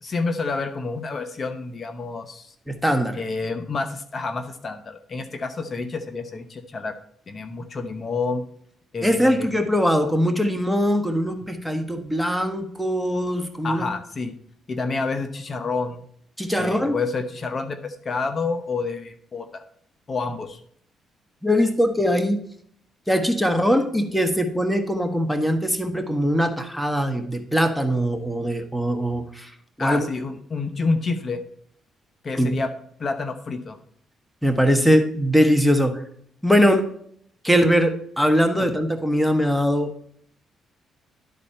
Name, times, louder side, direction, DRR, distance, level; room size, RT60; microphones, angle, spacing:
voice 1, 0.0-2.5 3.1-7.0 7.3-8.4 8.9-9.5 13.6-14.3 14.7-16.0 16.6-19.6 20.1-20.6 29.8-31.4 32.2-32.7 33.0-33.8, left 3 dB, 40° left, 8 dB, 0.9 m, -28 dB
voice 2, 2.7-3.2 9.0-13.9 16.4-17.0 21.4-22.4 23.1-30.1 32.3-32.6 34.4-36.0 36.4-36.9 37.4-40.1, equal, ahead, 5 dB, 1.2 m, -21 dB
11.5 x 4.2 x 5.6 m, 0.64 s
cardioid pair, 90°, 0 cm